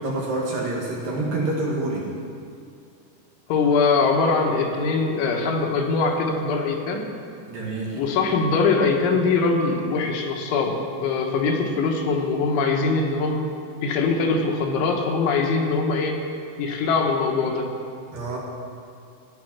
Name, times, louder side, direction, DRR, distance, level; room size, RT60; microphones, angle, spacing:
voice 1, 0.0-2.1 7.5-8.0 18.1-18.4, right 2 dB, 60° right, -3 dB, 2.5 m, -27 dB
voice 2, 3.5-7.2 7.9-13.5 13.8-16.2 16.6-17.7, left 4 dB, 80° left, 2 dB, 3.6 m, -22 dB
14.0 x 11.0 x 5.9 m, 2.4 s
omnidirectional pair, 5.4 m